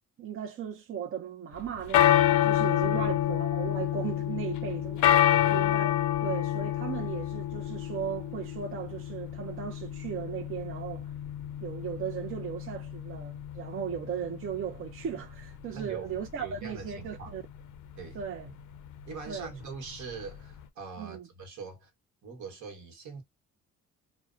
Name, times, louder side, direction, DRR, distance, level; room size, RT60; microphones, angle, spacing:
voice 1, 0.2-5.1 5.5-5.9 6.2-11.1 11.6-17.4 18.1-18.5 19.3-19.5 21.0-21.3, right 8 dB, 45° right, 0.5 m, -37 dB
sound 1, 1.6-20.6, left 11 dB, 80° left, 0.5 m, -29 dB
voice 2, 5.3-5.6 15.7-17.4 18.0-18.2 19.1-21.9 22.2-23.2, right 4 dB, 70° right, 1.1 m, -42 dB
2.7 x 2.1 x 2.4 m
cardioid pair, 90°, 30 cm